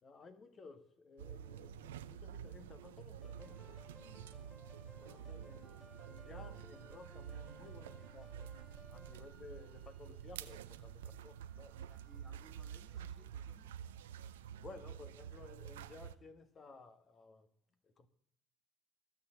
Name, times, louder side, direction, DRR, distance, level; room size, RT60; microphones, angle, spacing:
voice 1, 0.0-4.2 4.8-5.8 6.0-8.5 8.9-11.8 14.6-17.5 17.8-18.1, left 4 dB, 40° left, 1.4 m, -56 dB
sound 1, 1.2-16.2, right 9 dB, 90° right, 0.5 m, -49 dB
sound 2, 3.2-9.1, left 1 dB, 5° left, 0.6 m, -60 dB
Wind instrument woodwind instrument, 5.6-13.6, right 6 dB, 55° right, 1.5 m, -70 dB
voice 2, 11.7-13.8, right 3 dB, 20° right, 1.1 m, -65 dB
15.0 x 6.7 x 7.9 m
hypercardioid pair, 70°, 0 cm